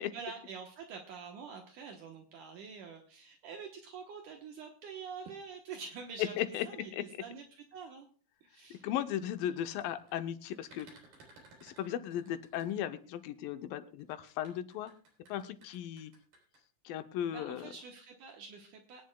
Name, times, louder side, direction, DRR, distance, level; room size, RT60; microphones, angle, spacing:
voice 1, 0.1-7.4 7.7-8.1 8.4-8.9 17.3-19.0, right 5 dB, 70° right, 3 dB, 2.5 m, -46 dB
voice 2, 6.4-6.7 6.9-7.1 8.7-10.9 11.6-14.9 15.3-16.1 16.9-17.7, left 11 dB, 85° left, 10 dB, 2.5 m, -36 dB
sound 1, 8.6-13.3 14.0-16.6, right 2 dB, 85° right, 5.6 m, -60 dB
23.0 x 10.5 x 2.3 m, 0.41 s
omnidirectional pair, 4.0 m